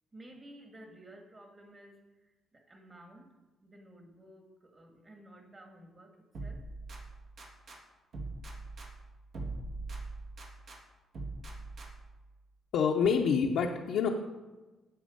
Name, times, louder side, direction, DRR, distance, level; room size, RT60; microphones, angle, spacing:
voice 1, 0.1-3.3 3.6-6.6, right 1 dB, 30° right, 3 dB, 2.2 m, -54 dB
sound 1, 6.3-7.8 8.1-10.8 11.1-12.2, right 2 dB, 60° right, 1.9 m, -42 dB
voice 2, 12.7-14.1, left 6 dB, 80° left, 0 dB, 0.8 m, -27 dB
9.2 x 7.7 x 5.1 m, 1.2 s
cardioid pair, 90°, 0 cm